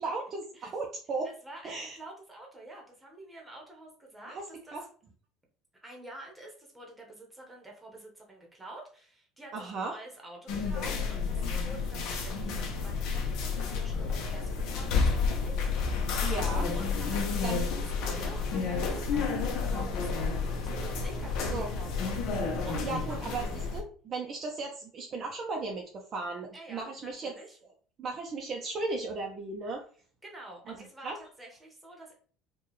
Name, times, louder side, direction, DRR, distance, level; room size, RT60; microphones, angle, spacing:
voice 1, 0.0-1.3 1.6-2.0 4.3-4.4 4.7-4.8 9.5-9.9 16.2-16.7 17.4-17.7 21.5-21.7 22.8-23.5 23.7-27.3 28.0-29.8 30.7-30.8 31.0-31.2, right 3 dB, 30° right, 0 dB, 0.5 m, -36 dB
voice 2, 1.2-4.8 5.7-16.0 16.7-23.2 26.5-27.6 30.2-32.1, right 1 dB, 10° right, 0 dB, 1.0 m, -48 dB
sound 1, 10.5-23.8, left 4 dB, 55° left, 0.8 m, -30 dB
4.6 x 2.3 x 3.0 m, 0.44 s
cardioid pair, 160°, 0 cm